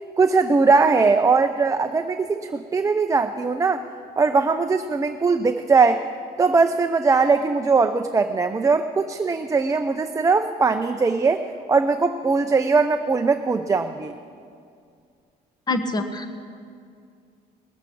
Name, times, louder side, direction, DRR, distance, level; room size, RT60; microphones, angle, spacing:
voice 1, 0.2-3.8 4.2-6.0 6.4-14.1, right 4 dB, 20° right, 7 dB, 0.5 m, -20 dB
voice 2, 15.7-16.4, left 2 dB, 25° left, 8 dB, 1.2 m, -25 dB
18.5 x 7.4 x 8.5 m, 2.3 s
cardioid pair, 110°, 17 cm